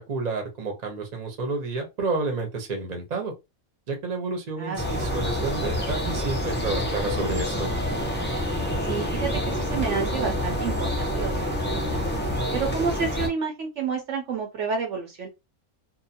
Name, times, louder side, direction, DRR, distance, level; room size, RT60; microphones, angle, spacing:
voice 1, 0.1-3.3 3.9-7.7, right 3 dB, 40° right, 0.7 m, -30 dB
voice 2, 4.6-5.0 8.9-12.0 12.5-15.3, right 5 dB, 65° right, 0.9 m, -30 dB
sound 1, 4.8-13.3, equal, 20° left, 0.3 m, -27 dB
2.7 x 2.1 x 2.7 m
omnidirectional pair, 1.5 m